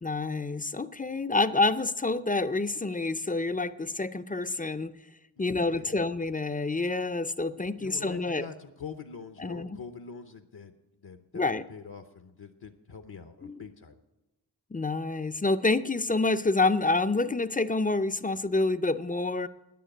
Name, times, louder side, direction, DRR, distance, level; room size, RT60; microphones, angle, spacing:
voice 1, 0.0-4.9 5.4-8.5 9.4-9.8 11.3-11.6 13.4-13.6 14.7-19.5, left 3 dB, 20° left, 13 dB, 0.4 m, -28 dB
voice 2, 5.4-6.1 7.5-14.0, left 5 dB, 65° left, 7 dB, 0.8 m, -45 dB
9.8 x 9.3 x 8.9 m, 0.99 s
wide cardioid pair, 65°, 41 cm